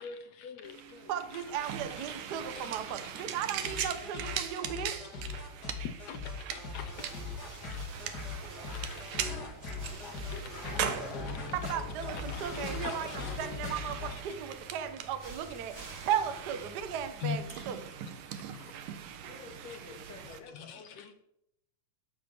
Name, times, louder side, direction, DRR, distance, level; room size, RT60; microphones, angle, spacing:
voice 1, 0.0-1.5 2.0-2.1 2.5-2.7 3.0-3.2 3.6-4.3 5.6-7.2 7.5-8.1 8.7-9.2 10.2-11.5 12.1-13.4 14.3-14.4 17.2-17.8 18.4-18.8 20.5-21.1, left 7 dB, 65° left, 2.1 m, -44 dB
sound 1, 0.6-20.4, right 9 dB, 80° right, 2.8 m, -41 dB
voice 2, 1.1-5.0 11.5-18.1, right 9 dB, 55° right, 1.1 m, -36 dB
sound 2, 3.6-14.1, left 4 dB, 30° left, 3.0 m, -40 dB
sound 3, 6.8-17.4, right 3 dB, 30° right, 3.6 m, -51 dB
voice 3, 19.3-21.2, left 5 dB, 85° left, 4.0 m, -49 dB
12.5 x 11.5 x 7.1 m
omnidirectional pair, 3.7 m